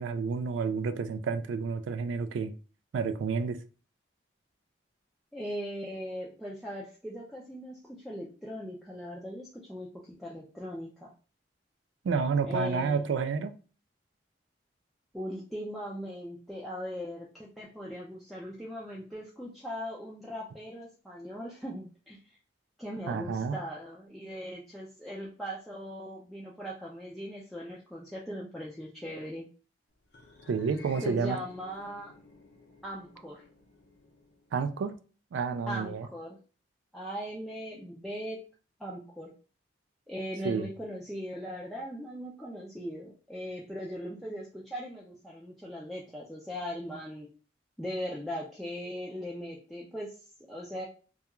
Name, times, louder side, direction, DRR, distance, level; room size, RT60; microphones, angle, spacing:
voice 1, 0.0-2.5 2.9-3.6 12.0-13.5 23.1-23.6 30.5-31.4 34.5-35.0 35.3-36.1 40.4-40.7, right 5 dB, 85° right, 10 dB, 0.3 m, -30 dB
voice 2, 5.3-11.1 12.4-13.0 15.1-22.4 22.8-29.5 31.0-32.1 32.8-33.4 35.6-36.4 36.9-38.4 38.8-39.3 40.1-47.3 47.8-50.9, equal, ahead, -5 dB, 0.3 m, -39 dB
sound 1, 30.1-34.7, left 3 dB, 70° left, 0.6 m, -53 dB
2.3 x 2.3 x 2.9 m, 0.37 s
head